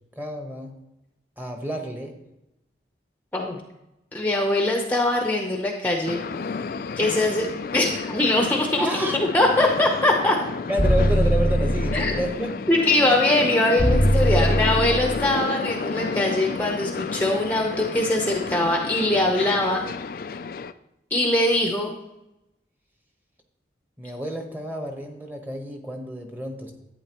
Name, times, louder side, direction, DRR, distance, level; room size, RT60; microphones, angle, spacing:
voice 1, 0.2-0.7 1.4-2.1 8.8-9.2 10.7-12.5 14.2-14.8 24.0-26.7, equal, 10° right, 3 dB, 1.1 m, -30 dB
voice 2, 4.1-6.2 7.0-7.5 7.7-10.4 11.9-12.1 12.7-19.8 21.1-21.9, left 1 dB, 10° left, 1 dB, 0.8 m, -22 dB
sound 1, 6.1-20.7, left 4 dB, 50° left, 0.3 m, -31 dB
sound 2, 10.8-12.2 13.8-15.2, equal, 35° right, 1.9 m, -21 dB
11.0 x 9.1 x 3.0 m, 0.91 s
head